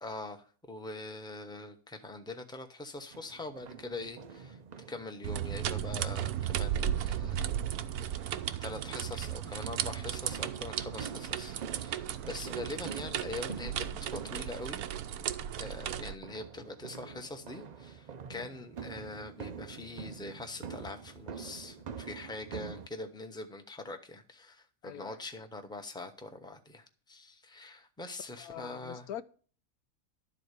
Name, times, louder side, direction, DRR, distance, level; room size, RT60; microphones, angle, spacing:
voice 1, 0.0-4.6 4.9-7.6 7.9-8.2 8.6-14.8 15.6-29.1, left 2 dB, 5° left, 5 dB, 0.9 m, -43 dB
sound 1, 3.1-22.9, right 6 dB, 70° right, 0.4 m, -47 dB
sound 2, 5.2-16.2, right 10 dB, 90° right, 1.2 m, -35 dB
voice 2, 24.8-25.2 28.4-29.2, left 11 dB, 90° left, 13 dB, 1.2 m, -43 dB
12.0 x 4.1 x 8.1 m, 0.42 s
omnidirectional pair, 1.5 m